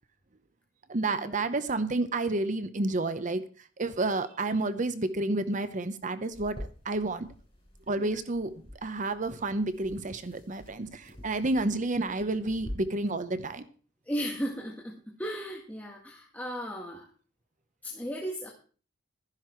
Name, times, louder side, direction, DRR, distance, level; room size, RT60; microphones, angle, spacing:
voice 1, 0.9-3.5 3.8-6.6 6.8-7.3 7.9-8.5 8.8-13.6, right 2 dB, 40° right, 11 dB, 0.8 m, -30 dB
sound 1, 6.3-12.7, equal, 30° left, 7.5 m, -48 dB
voice 2, 14.1-17.1 17.8-18.5, equal, 10° left, -1 dB, 1.6 m, -36 dB
13.0 x 10.5 x 4.5 m, 0.40 s
head